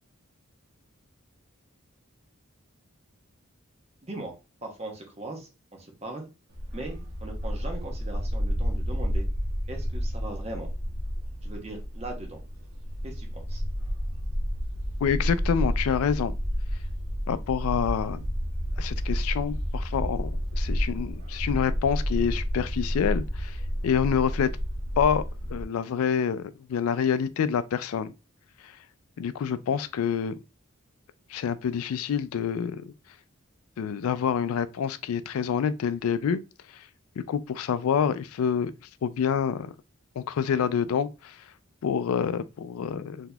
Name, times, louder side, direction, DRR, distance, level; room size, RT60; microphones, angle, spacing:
voice 1, 4.0-4.3 4.6-6.3 6.7-9.3 9.7-10.7 11.4-12.4 13.0-13.6, right 2 dB, 30° right, 0.8 m, -39 dB
Bark, 6.5-25.6, equal, 80° right, 1.1 m, -30 dB
voice 2, 15.0-16.3 17.3-18.2 18.8-23.6 23.8-24.5 25.0-25.2 25.5-28.1 29.2-30.3 31.3-32.8 33.8-36.4 37.3-38.7 39.0-39.7 40.2-41.4 41.8-43.3, left 7 dB, 80° left, 0.3 m, -27 dB
3.9 x 2.8 x 2.2 m
head